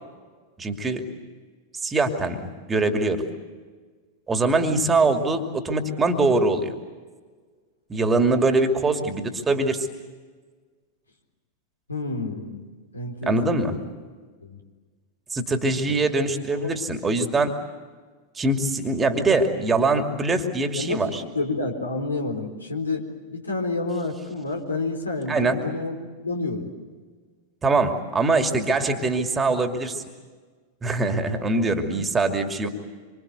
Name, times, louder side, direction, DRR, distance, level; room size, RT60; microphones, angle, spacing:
voice 1, 0.6-1.1 1.8-3.3 4.3-6.7 7.9-9.9 13.3-13.7 15.3-17.5 18.4-21.2 25.3-25.6 27.6-30.0 30.8-32.7, right 3 dB, 15° right, 6 dB, 2.6 m, -23 dB
voice 2, 11.9-12.6 12.9-13.7 14.4-14.6 15.9-16.0 16.6-16.7 20.8-26.0 26.2-26.7, left 3 dB, 80° left, 2 dB, 3.9 m, -29 dB
26.5 x 25.5 x 8.1 m, 1.4 s
figure-of-eight pair, 90°, 0 cm